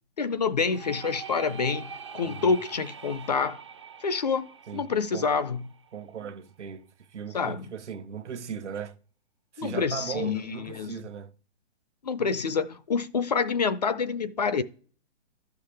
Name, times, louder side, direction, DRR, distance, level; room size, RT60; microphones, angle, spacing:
voice 1, 0.2-3.6 4.0-5.6 7.3-7.7 9.6-10.9 12.0-14.6, left 5 dB, 40° left, 0.4 m, -27 dB
sound 1, 0.7-6.3, right 6 dB, 25° right, 0.4 m, -43 dB
voice 2, 2.2-2.6 4.7-5.3 5.9-9.0 9.5-11.3, right 7 dB, 75° right, 1.0 m, -38 dB
13.0 x 5.7 x 3.3 m
hypercardioid pair, 160°, 35 cm